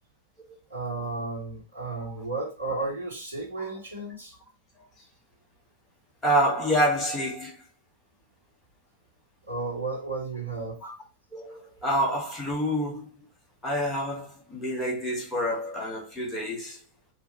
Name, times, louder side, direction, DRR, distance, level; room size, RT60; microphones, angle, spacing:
voice 1, 0.7-4.3 9.5-10.8, right 3 dB, 80° right, 1.6 m, -33 dB
voice 2, 6.2-7.6 10.8-10.9 11.3-13.1 13.6-16.8, equal, 10° left, 1.4 m, -27 dB
4.3 x 2.8 x 4.3 m
figure-of-eight pair, 90°, 0 cm